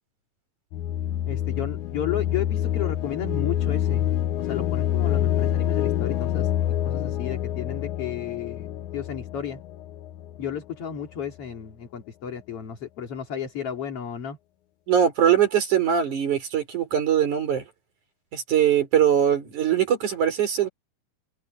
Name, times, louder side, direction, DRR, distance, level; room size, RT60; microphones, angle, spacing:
sound 1, 0.7-10.5, left 11 dB, 85° left, 1.7 m, -27 dB
voice 1, 1.3-4.1 4.4-6.5 6.8-9.6 10.4-14.4, left 8 dB, 40° left, 2.9 m, -33 dB
voice 2, 14.9-17.6 18.3-20.7, right 9 dB, 50° right, 5.9 m, -21 dB
omnidirectional pair, 4.4 m